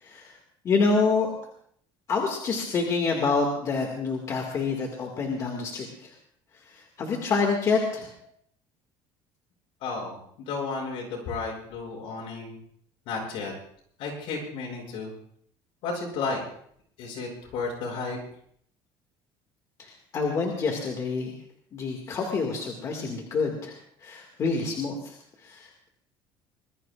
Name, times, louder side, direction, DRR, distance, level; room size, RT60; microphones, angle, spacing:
voice 1, 0.6-1.3 2.1-6.1 7.0-8.1 20.1-21.3 21.7-23.7 24.0-25.1 25.4-25.9, left 4 dB, 35° left, 1 dB, 2.1 m, -27 dB
voice 2, 9.8-10.2 10.5-12.6 13.1-13.5 14.0-15.1 15.8-16.4 17.0-18.2, left 4 dB, 65° left, -1 dB, 7.2 m, -32 dB
25.0 x 21.0 x 2.5 m, 0.65 s
cardioid pair, 170°, 10 cm